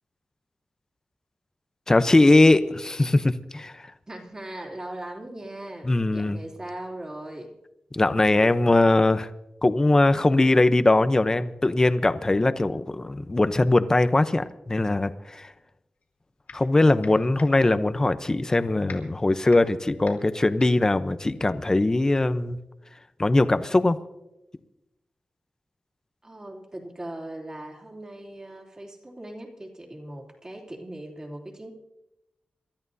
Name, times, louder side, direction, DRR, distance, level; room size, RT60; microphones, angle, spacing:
voice 1, 1.9-3.9 5.8-6.4 7.9-9.3 9.6-15.5 16.5-22.6 23.2-24.0, left 2 dB, 25° left, 12 dB, 0.8 m, -21 dB
voice 2, 4.1-7.6 26.2-31.7, right 1 dB, 25° right, 0 dB, 3.1 m, -39 dB
sound 1, 16.0-16.7 17.0-22.0, left 5 dB, 85° left, 3.4 m, -46 dB
27.5 x 13.5 x 2.8 m, 0.93 s
wide cardioid pair, 100°, 3 cm